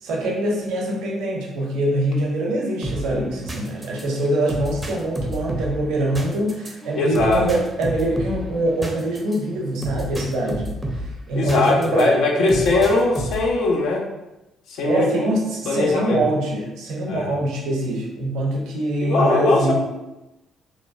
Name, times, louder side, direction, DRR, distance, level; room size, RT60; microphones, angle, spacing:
voice 1, 0.0-10.8 11.3-12.6 14.8-19.7, right 1 dB, 65° right, -1 dB, 0.5 m, -24 dB
sound 1, 2.8-12.0 12.5-13.6, equal, 15° right, 0.5 m, -31 dB
voice 2, 6.9-7.4 11.3-14.1 14.7-15.3 15.7-16.2 17.1-17.3 19.0-19.7, left 3 dB, 65° left, -1 dB, 0.4 m, -20 dB
2.7 x 2.1 x 2.5 m, 0.98 s
figure-of-eight pair, 45°, 0 cm